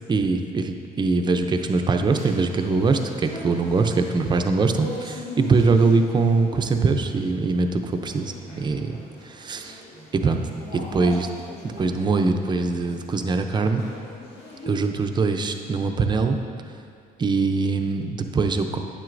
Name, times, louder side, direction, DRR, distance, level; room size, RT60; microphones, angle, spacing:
voice 1, 0.1-9.0 9.2-9.8 10.1-10.4 10.7-11.3 11.6-13.8 14.7-16.4 17.2-18.8, right 4 dB, 25° right, 6 dB, 0.5 m, -22 dB
sound 1, 2.0-14.8, left 1 dB, 75° left, 1.9 m, -41 dB
8.9 x 7.7 x 2.6 m, 2.3 s
cardioid pair, 110°, 17 cm